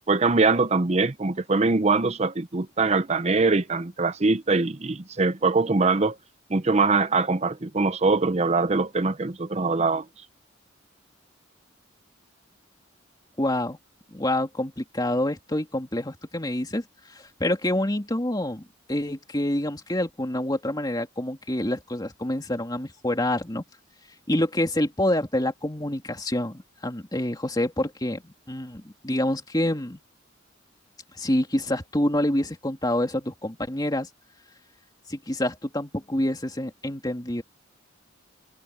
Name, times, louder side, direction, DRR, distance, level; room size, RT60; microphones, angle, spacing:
voice 1, 0.1-6.2 6.5-10.0, right 3 dB, 35° right, 0.8 m, -23 dB
voice 2, 13.4-13.8 14.1-16.8 17.1-18.6 18.9-23.6 24.3-28.2 28.5-30.0 31.2-34.1 35.1-37.4, left 1 dB, 20° left, 2.7 m, -27 dB
head